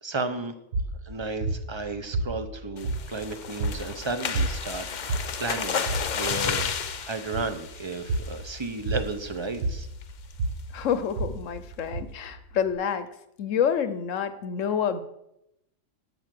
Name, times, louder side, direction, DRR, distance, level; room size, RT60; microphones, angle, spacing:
voice 1, 0.0-0.5 1.0-5.8 6.1-6.7 7.1-9.9, right 3 dB, 30° right, 9 dB, 0.6 m, -33 dB
sound 1, 0.7-12.7, right 2 dB, 70° right, 1.5 m, -32 dB
sound 2, 2.8-8.5 9.0-9.2 9.5-9.6 10.0-10.3, left 7 dB, 50° left, 0.6 m, -32 dB
voice 2, 10.7-13.1 13.4-15.0, left 8 dB, 75° left, 12 dB, 1.2 m, -28 dB
11.5 x 5.3 x 7.6 m, 0.84 s
omnidirectional pair, 1.3 m